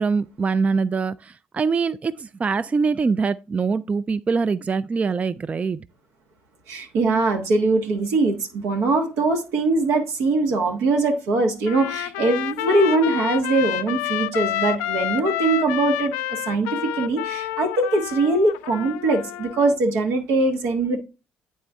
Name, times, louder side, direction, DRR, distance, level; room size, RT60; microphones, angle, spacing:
voice 1, 0.0-5.8, right 5 dB, 30° right, 0.3 m, -23 dB
voice 2, 6.7-21.0, right 2 dB, 70° right, 1.2 m, -22 dB
Trumpet, 11.7-19.8, left 14 dB, 80° left, 0.4 m, -29 dB
8.9 x 4.3 x 3.4 m
hypercardioid pair, 60°, 5 cm